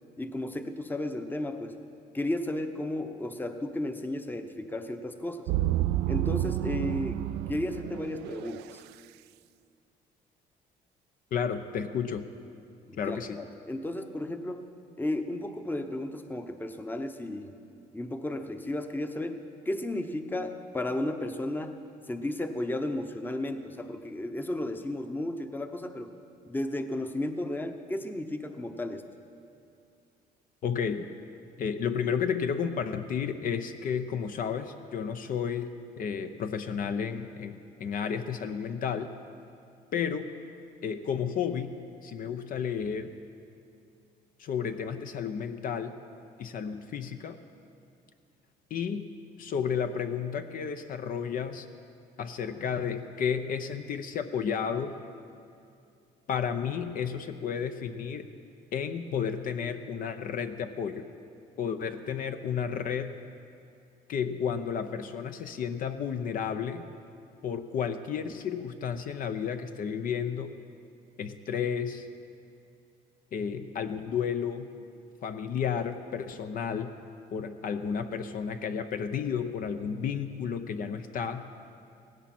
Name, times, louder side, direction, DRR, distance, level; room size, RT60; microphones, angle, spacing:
voice 1, 0.2-1.8 2.1-5.5 6.1-7.2 7.5-8.8 12.9-14.7 15.0-17.5 17.9-21.8 22.1-26.1 26.4-29.0, left 1 dB, 10° left, 7 dB, 0.9 m, -34 dB
sound 1, 5.5-8.7, right 14 dB, 80° right, 0.4 m, -30 dB
voice 2, 11.3-12.2 13.0-13.4 30.6-31.1 31.6-39.1 39.9-40.3 40.8-41.7 42.0-43.1 44.4-45.9 46.4-47.4 48.7-49.1 49.4-51.7 52.2-54.9 56.3-58.3 58.7-61.1 61.6-63.2 64.1-66.8 67.4-70.5 71.2-72.1 73.3-74.7 75.2-76.9 77.3-81.4, left 7 dB, 55° left, 8 dB, 0.8 m, -32 dB
17.5 x 16.5 x 4.3 m, 2.5 s
cardioid pair, 110°, 17 cm